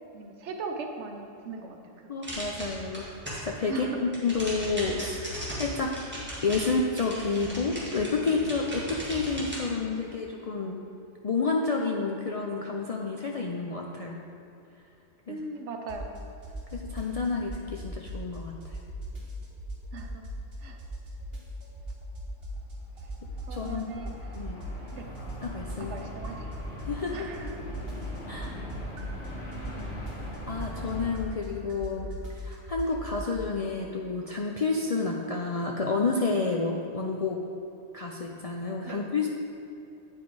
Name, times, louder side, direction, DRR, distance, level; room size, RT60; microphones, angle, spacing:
voice 1, 0.1-1.8 3.7-4.0 15.3-16.2 19.9-20.2 20.6-20.8 23.5-24.1 24.9-25.1 25.8-26.5 27.1-27.5 38.9-39.0, right 4 dB, 75° right, 4 dB, 1.0 m, -38 dB
voice 2, 2.1-3.1 3.4-5.9 6.4-10.8 11.2-14.2 15.3-15.4 16.7-18.8 23.5-23.9 24.3-24.6 25.4-26.0 26.9-27.6 28.3-28.5 30.5-37.4 37.9-39.3, left 4 dB, 55° left, -1 dB, 0.4 m, -30 dB
sound 1, 2.2-3.6 3.9-9.6, right 1 dB, 10° right, 1.7 m, -37 dB
sound 2, 15.9-16.2 16.4-18.4 18.6-20.5 20.8-22.7 23.0-27.1 27.3-33.2, right 1 dB, 55° right, 1.4 m, -38 dB
sound 3, 22.9-31.1, equal, 90° left, 2.1 m, -41 dB
8.6 x 5.1 x 4.6 m, 2.9 s
omnidirectional pair, 1.2 m